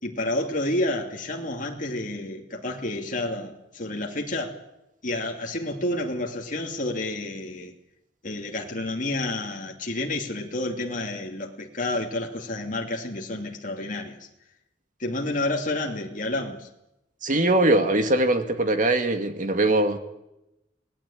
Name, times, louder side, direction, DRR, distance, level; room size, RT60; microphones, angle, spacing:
voice 1, 0.0-4.6 5.0-7.7 8.2-14.3 15.0-16.7, left 2 dB, 50° left, 1 dB, 2.7 m, -30 dB
voice 2, 17.2-20.0, right 2 dB, 45° right, 7 dB, 2.4 m, -21 dB
28.0 x 19.0 x 8.7 m, 0.91 s
head